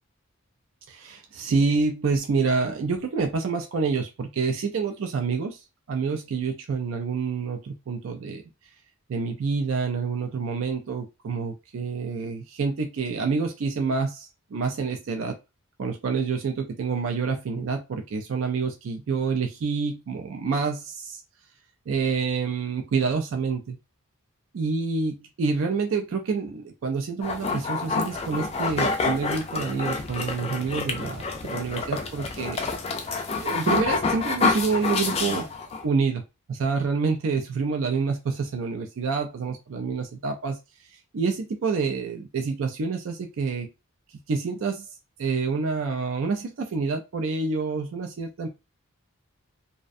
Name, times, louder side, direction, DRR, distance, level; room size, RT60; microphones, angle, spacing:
voice 1, 0.9-5.6 5.9-8.4 9.1-15.4 15.8-21.2 21.9-23.8 24.5-32.6 33.4-35.5 35.8-36.2 36.5-40.6 40.9-43.7 44.3-44.9 45.2-48.5, right 4 dB, 65° right, 5 dB, 0.4 m, -27 dB
sound 1, 27.2-35.8, left 4 dB, 30° left, 0.3 m, -28 dB
2.4 x 2.1 x 2.4 m, 0.26 s
head